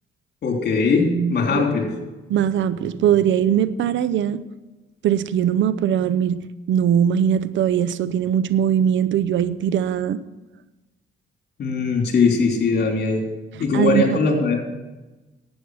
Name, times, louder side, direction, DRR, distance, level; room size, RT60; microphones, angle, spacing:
voice 1, 0.4-1.9 11.6-13.2 13.6-14.6, left 4 dB, 55° left, 1 dB, 3.4 m, -20 dB
voice 2, 2.3-4.4 5.0-10.2 13.7-14.2, right 9 dB, 70° right, 15 dB, 0.6 m, -20 dB
11.5 x 9.0 x 6.3 m, 1.1 s
cardioid pair, 90°, 20 cm